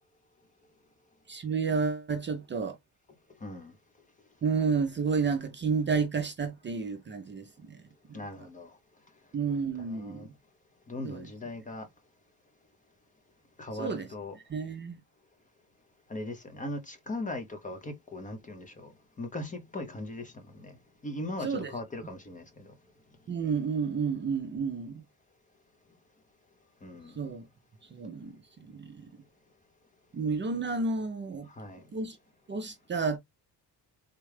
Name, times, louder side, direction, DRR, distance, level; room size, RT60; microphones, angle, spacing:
voice 1, 1.3-2.8 4.4-7.8 8.1-8.2 9.3-10.3 11.0-11.3 13.8-14.1 14.5-15.0 21.4-21.7 23.3-25.0 27.2-27.5 27.9-29.1 30.1-31.5 31.9-32.2 32.5-33.2, right 5 dB, 30° right, 0.5 m, -31 dB
voice 2, 3.4-3.7 8.1-8.8 9.8-10.3 10.9-11.9 13.6-14.4 16.1-20.8 21.0-22.7 26.8-27.4 31.4-31.9, left 2 dB, 20° left, 0.6 m, -39 dB
3.6 x 2.3 x 3.2 m
cardioid pair, 160°, 38 cm